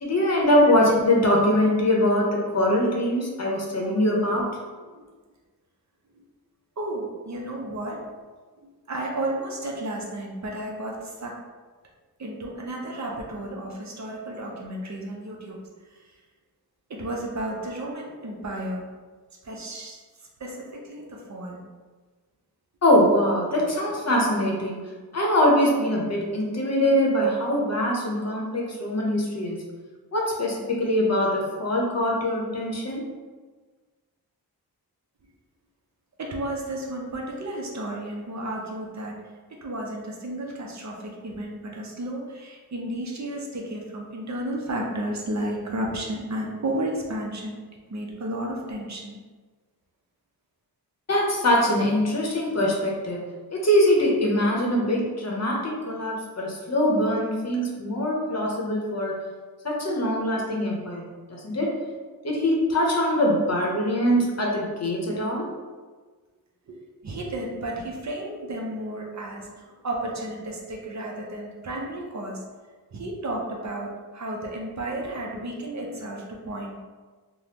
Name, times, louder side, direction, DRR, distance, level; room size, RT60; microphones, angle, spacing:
voice 1, 0.0-4.5 22.8-24.8 25.1-29.6 30.1-33.0 51.1-53.2 53.5-59.2 59.6-61.7 62.2-65.5, left 1 dB, 40° left, -2 dB, 0.7 m, -23 dB
voice 2, 6.8-8.1 8.6-11.4 12.2-15.6 16.9-18.9 19.4-20.0 20.4-21.6 36.2-47.6 47.9-49.2 66.7-66.8 67.0-72.4 72.9-76.8, right 1 dB, 45° right, -1 dB, 0.5 m, -33 dB
3.4 x 2.0 x 2.8 m, 1.4 s
wide cardioid pair, 85°, 39 cm